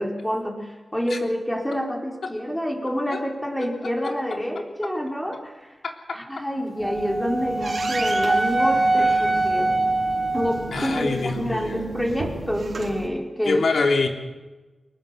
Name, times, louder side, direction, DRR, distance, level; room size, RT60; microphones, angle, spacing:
voice 1, 0.0-5.7 6.1-9.7 10.3-13.6, equal, 5° left, 1 dB, 4.3 m, -28 dB
sound 1, 6.6-13.1, right 3 dB, 60° right, 3.7 m, -34 dB
Wind instrument woodwind instrument, 6.8-11.0, right 2 dB, 40° right, 3.8 m, -23 dB
voice 2, 10.7-11.8 13.4-14.1, left 3 dB, 75° left, 3 dB, 3.3 m, -24 dB
24.0 x 20.0 x 6.9 m, 1.2 s
wide cardioid pair, 105°, 0 cm